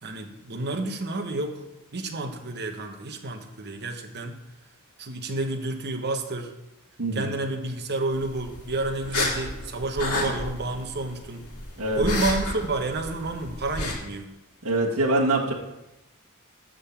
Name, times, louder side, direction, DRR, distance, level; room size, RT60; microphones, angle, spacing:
voice 1, 0.0-4.3 5.0-6.5 7.1-11.4 12.0-14.3, right 2 dB, 50° right, 5 dB, 1.1 m, -30 dB
sound 1, 8.1-13.9, left 2 dB, 90° left, 1.9 m, -32 dB
voice 2, 14.6-15.5, right 2 dB, 70° right, -2 dB, 1.6 m, -24 dB
11.0 x 3.8 x 7.2 m, 0.94 s
head